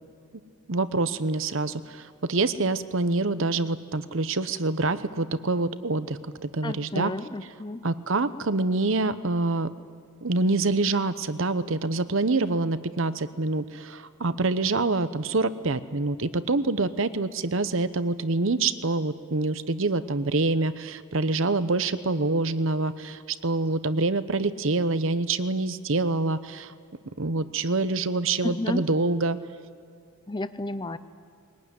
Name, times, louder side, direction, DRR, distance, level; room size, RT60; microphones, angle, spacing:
voice 1, 0.7-7.1 7.8-9.7 10.2-26.7 27.2-29.4, right 3 dB, 65° right, 13 dB, 0.9 m, -26 dB
voice 2, 6.6-7.8 28.4-28.8 30.3-31.0, left 2 dB, 20° left, 13 dB, 0.6 m, -31 dB
22.0 x 18.0 x 9.6 m, 2.4 s
head